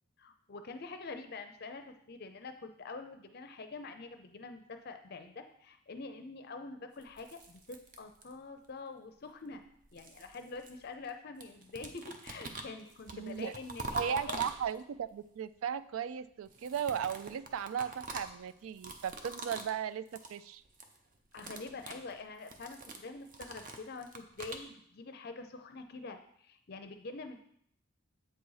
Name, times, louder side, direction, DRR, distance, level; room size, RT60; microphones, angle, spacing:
voice 1, 0.2-9.6 9.9-14.4 21.3-27.4, left 3 dB, 45° left, 7 dB, 0.5 m, -46 dB
sound 1, 7.0-8.6 9.5-11.1 11.4-15.0 16.4-19.8 20.1-20.4 20.7-21.0 21.3-24.7, right 2 dB, 40° right, 0.7 m, -45 dB
voice 2, 13.1-13.5 13.9-20.6, right 8 dB, 75° right, 15 dB, 0.3 m, -36 dB
8.0 x 4.1 x 4.7 m, 0.69 s
head